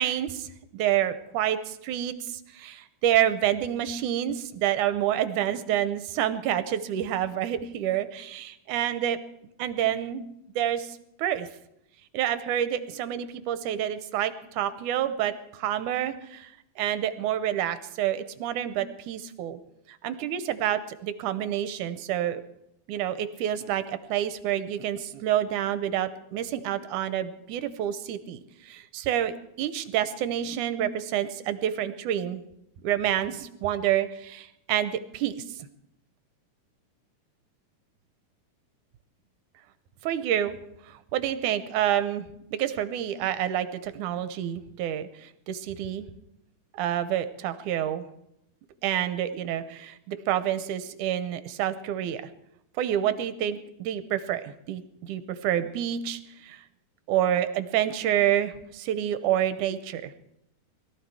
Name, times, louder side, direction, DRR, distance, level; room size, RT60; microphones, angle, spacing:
voice 1, 0.0-9.2 9.6-10.3 10.6-11.5 12.1-19.6 20.0-22.4 22.9-32.4 32.8-35.4 40.1-40.5 40.9-42.3 42.6-46.1 46.7-48.1 48.8-52.2 52.8-56.6 57.1-60.1, right 11 dB, 80° right, 12 dB, 2.3 m, -28 dB
21.5 x 14.0 x 4.8 m, 0.81 s
omnidirectional pair, 3.6 m